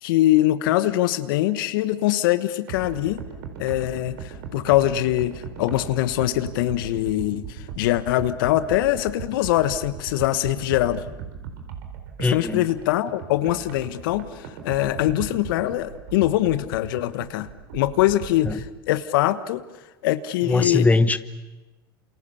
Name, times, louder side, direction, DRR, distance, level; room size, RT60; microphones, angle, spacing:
voice 1, 0.0-3.2 3.6-11.0 12.2-19.6 20.0-20.9, left 14 dB, 65° left, 13 dB, 1.3 m, -23 dB
sound 1, 2.7-18.7, right 7 dB, 65° right, 4.2 m, -38 dB
voice 2, 12.2-12.6 18.4-18.6 20.4-21.2, left 3 dB, 10° left, 13 dB, 1.2 m, -20 dB
29.0 x 28.0 x 7.1 m, 1.1 s
hypercardioid pair, 85°, 12 cm